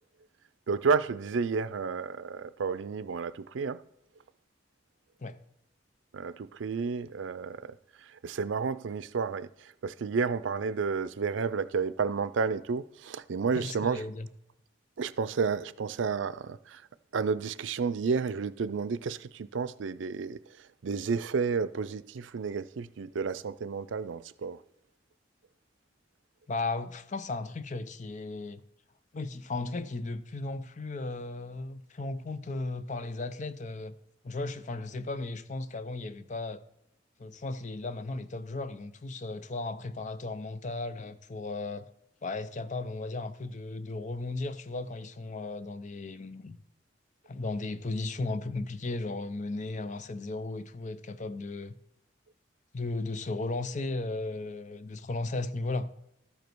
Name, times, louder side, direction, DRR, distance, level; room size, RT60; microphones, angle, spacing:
voice 1, 0.7-3.8 6.1-7.6 8.2-9.5 9.8-14.0 15.0-16.8 17.1-20.4 20.8-24.6, right 5 dB, 85° right, 0.4 m, -31 dB
voice 2, 13.5-14.3 26.5-28.6 29.1-34.0 34.2-36.6 37.2-41.9 42.2-46.6 47.3-51.7 52.7-55.9, left 2 dB, 40° left, 0.6 m, -35 dB
13.0 x 5.1 x 4.6 m
head